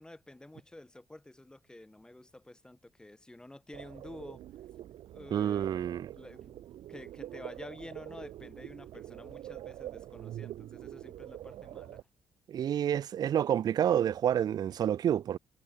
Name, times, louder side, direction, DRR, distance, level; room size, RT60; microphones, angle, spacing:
voice 1, 0.0-4.4 5.1-6.6 6.9-12.0, left 1 dB, 10° left, 4.2 m, -50 dB
sound 1, 3.7-12.0, right 12 dB, 70° right, 3.3 m, -45 dB
voice 2, 5.3-6.1 12.5-15.4, right 10 dB, 45° right, 0.4 m, -28 dB
cardioid pair, 140°, 9 cm